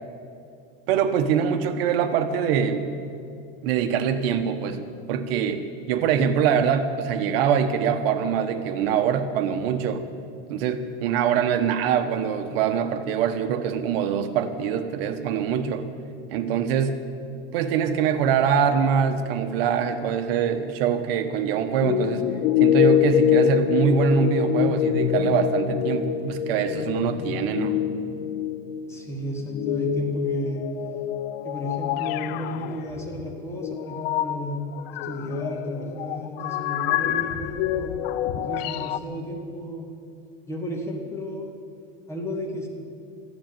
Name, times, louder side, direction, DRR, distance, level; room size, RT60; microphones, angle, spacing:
voice 1, 0.9-2.8 3.6-4.8 5.1-5.6 5.9-10.0 10.5-15.9 16.3-17.0 17.5-22.3 22.6-27.8, right 7 dB, 70° right, 9 dB, 1.2 m, -23 dB
sound 1, 21.8-28.9 29.5-39.0, left 10 dB, 70° left, 0.7 m, -25 dB
voice 2, 28.9-30.6 31.4-34.6 34.9-38.0 38.3-39.9 40.5-41.5 42.1-42.7, equal, 10° left, 0 dB, 2.4 m, -33 dB
14.0 x 11.0 x 9.0 m, 2.6 s
supercardioid pair, 155°, 31 cm